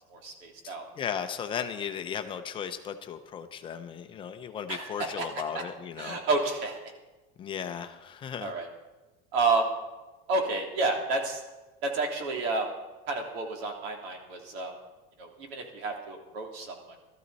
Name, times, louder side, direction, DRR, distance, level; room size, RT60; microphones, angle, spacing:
voice 1, 0.1-0.9 4.7-5.3 6.0-6.9 8.4-8.7 9.3-9.7 10.3-11.4 11.8-12.7 13.1-14.7 15.2-16.9, right 3 dB, 80° right, 2 dB, 3.0 m, -30 dB
voice 2, 0.6-6.2 7.4-8.5, left 8 dB, 15° left, 7 dB, 0.6 m, -36 dB
17.5 x 13.5 x 4.1 m, 1.1 s
cardioid pair, 180°, 30 cm